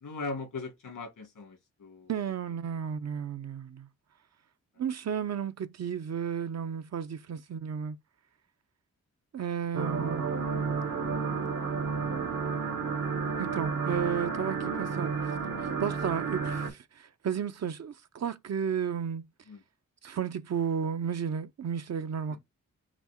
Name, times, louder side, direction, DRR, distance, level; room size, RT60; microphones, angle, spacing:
voice 1, 0.0-2.1 19.5-19.6 22.3-22.4, left 3 dB, 85° left, 2.2 m, -39 dB
voice 2, 2.1-3.9 4.8-8.0 9.3-10.3 13.4-15.1 15.8-19.3 20.0-22.4, right 7 dB, 55° right, 0.6 m, -33 dB
sound 1, 9.7-16.7, right 5 dB, 80° right, 1.5 m, -31 dB
6.0 x 2.0 x 4.3 m
cardioid pair, 50°, 31 cm